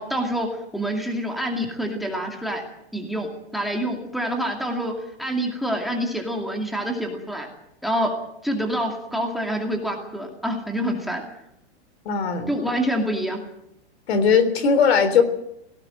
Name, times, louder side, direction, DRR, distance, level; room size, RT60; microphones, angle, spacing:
voice 1, 0.0-2.6 2.9-4.9 5.2-7.5 7.8-8.1 8.4-11.2 12.5-13.4, equal, ahead, 2 dB, 2.4 m, -26 dB
voice 2, 12.1-12.5 14.1-15.2, left 6 dB, 65° left, 11 dB, 3.8 m, -18 dB
18.0 x 17.5 x 9.0 m, 0.79 s
supercardioid pair, 165°, 34 cm